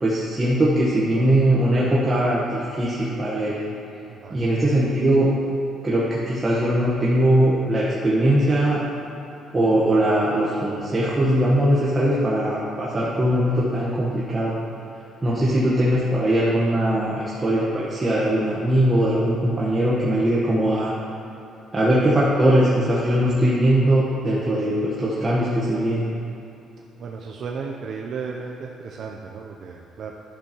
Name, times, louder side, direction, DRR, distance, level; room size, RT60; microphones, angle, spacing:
voice 1, 0.0-3.6 4.3-5.3 5.8-8.8 9.5-14.6 15.2-20.9 21.7-26.1, right 1 dB, 20° right, -7 dB, 1.1 m, -20 dB
voice 2, 4.1-4.4 27.0-30.1, right 5 dB, 55° right, 0 dB, 0.5 m, -34 dB
11.5 x 6.4 x 2.9 m, 2.9 s
cardioid pair, 120°, 0 cm